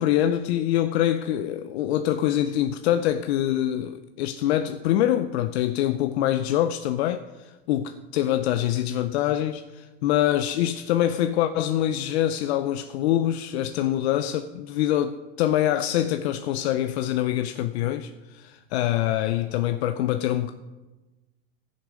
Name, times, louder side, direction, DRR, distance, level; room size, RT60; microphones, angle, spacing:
voice 1, 0.0-20.5, left 12 dB, 70° left, 0.6 m, -25 dB
15.0 x 6.5 x 5.1 m
supercardioid pair, 155°, 33 cm